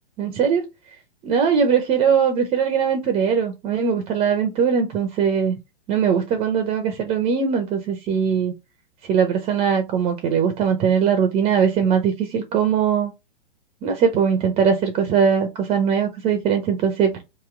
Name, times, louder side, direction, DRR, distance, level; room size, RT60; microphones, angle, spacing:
voice 1, 0.2-0.7 1.2-5.6 5.9-8.5 9.1-13.1 13.8-17.2, right 7 dB, 20° right, 0.5 m, -20 dB
2.9 x 2.8 x 3.5 m
hypercardioid pair, 120°, 29 cm